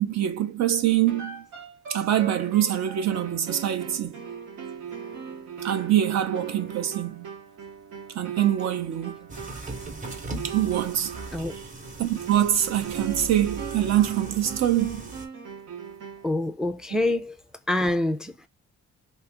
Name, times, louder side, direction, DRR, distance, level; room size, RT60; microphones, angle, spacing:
voice 1, 0.0-1.4 1.9-4.1 5.6-7.3 8.2-9.1 10.4-11.1 12.0-15.1, right 11 dB, 60° right, 0.6 m, -24 dB
sound 1, 1.1-16.4, right 7 dB, 90° right, 0.9 m, -39 dB
sound 2, 9.3-15.3, right 2 dB, 25° right, 0.8 m, -39 dB
voice 2, 16.2-17.4 17.7-18.5, left 1 dB, ahead, 0.3 m, -26 dB
2.9 x 2.4 x 3.3 m
cardioid pair, 90°, 30 cm